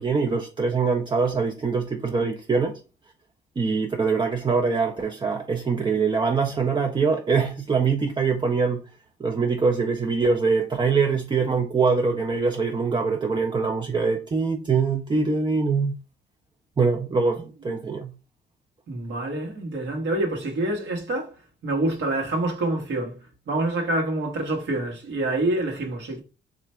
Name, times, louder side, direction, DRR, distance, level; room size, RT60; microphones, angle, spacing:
voice 1, 0.0-2.7 3.6-8.8 9.2-15.9 16.8-18.1, right 4 dB, 25° right, 0.4 m, -23 dB
voice 2, 18.9-21.4 21.6-26.2, right 2 dB, 65° right, 1.1 m, -27 dB
3.2 x 2.5 x 4.2 m
cardioid pair, 90°, 20 cm